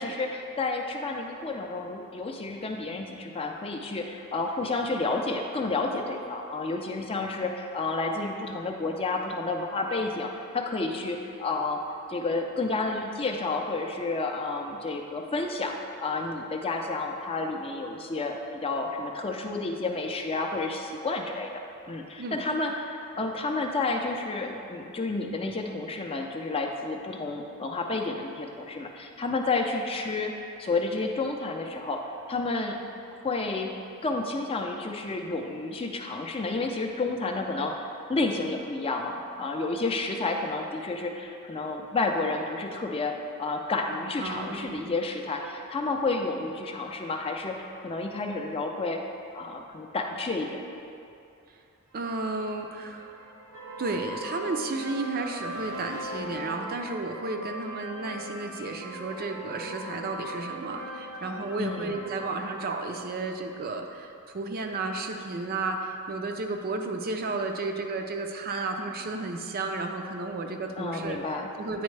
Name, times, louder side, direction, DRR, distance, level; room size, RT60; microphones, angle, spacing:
voice 1, 0.0-11.8 12.1-21.5 21.9-30.3 30.6-32.8 33.2-33.7 34.0-49.0 49.3-50.6 61.6-62.0 70.8-71.5, left 3 dB, 25° left, 2 dB, 0.4 m, -30 dB
voice 2, 44.2-44.9 51.9-53.3 53.8-71.8, right 3 dB, 45° right, 4 dB, 0.4 m, -33 dB
sound 1, 52.0-63.7, equal, 80° right, 1.0 m, -40 dB
9.2 x 4.3 x 3.2 m, 2.5 s
head